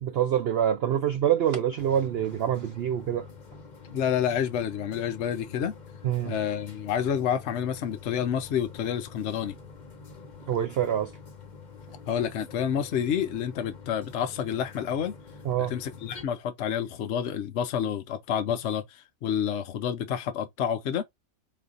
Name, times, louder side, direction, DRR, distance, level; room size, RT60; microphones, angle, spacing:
voice 1, 0.0-3.3 6.0-6.3 10.5-11.1 15.4-15.7, right 10 dB, 65° right, 0.6 m, -26 dB
sound 1, 1.8-16.2, left 5 dB, 35° left, 1.0 m, -47 dB
voice 2, 3.9-5.7 6.2-9.6 12.1-15.1 15.6-21.0, left 9 dB, 60° left, 0.8 m, -29 dB
4.1 x 2.6 x 3.8 m
omnidirectional pair, 1.5 m